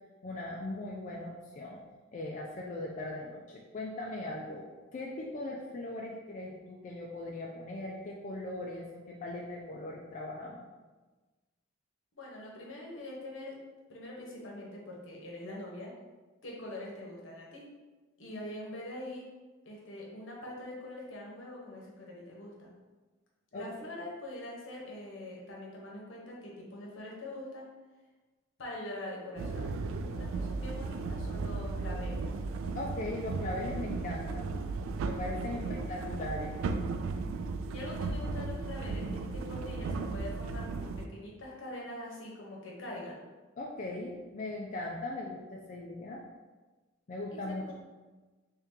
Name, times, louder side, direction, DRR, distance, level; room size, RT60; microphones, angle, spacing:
voice 1, 0.2-1.8 2.1-4.7 4.9-10.6 23.5-23.7 32.7-34.5 35.0-35.6 35.9-36.5 43.6-46.2 47.1-47.6, left 2 dB, 40° left, -3 dB, 0.4 m, -39 dB
voice 2, 12.2-13.6 13.9-15.9 16.4-17.7 18.2-19.3 19.6-22.7 23.5-27.7 28.6-29.7 30.0-32.3 35.2-36.0 37.7-43.2 47.3-47.7, left 1 dB, 70° left, -2 dB, 1.0 m, -43 dB
sound 1, 29.4-41.1, right 3 dB, 85° right, 0.3 m, -35 dB
3.5 x 2.9 x 3.6 m, 1.3 s
head